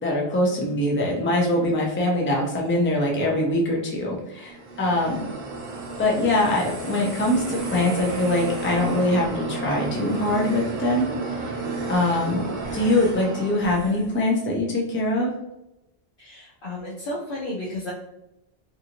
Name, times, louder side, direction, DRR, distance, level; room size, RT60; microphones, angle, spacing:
voice 1, 0.0-5.2 6.0-11.6 11.9-12.4 12.7-15.3, left 1 dB, 20° left, -1 dB, 0.3 m, -23 dB
sound 1, 4.4-14.2, right 3 dB, 55° right, 0.6 m, -32 dB
voice 2, 16.2-17.9, left 1 dB, 55° left, -4 dB, 0.7 m, -33 dB
2.7 x 2.5 x 2.8 m, 0.89 s
omnidirectional pair, 1.2 m